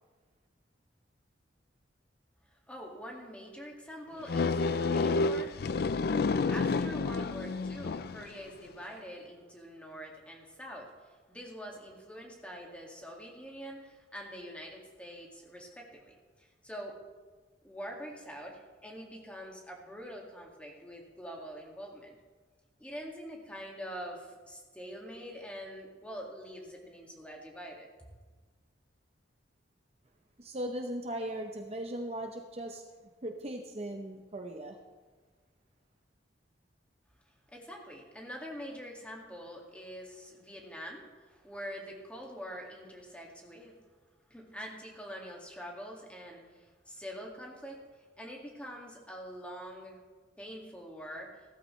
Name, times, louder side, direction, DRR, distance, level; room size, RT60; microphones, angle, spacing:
voice 1, 2.5-5.7 6.5-17.0 17.6-22.2 22.8-27.9 37.5-43.8 44.3-50.0 50.4-51.3, equal, 5° left, -1 dB, 2.1 m, -45 dB
sound 1, 4.3-8.3, left 4 dB, 55° left, 0.4 m, -29 dB
voice 2, 30.4-32.8 33.2-34.8, right 1 dB, 35° right, 3 dB, 0.8 m, -38 dB
16.0 x 14.0 x 3.2 m, 1.4 s
head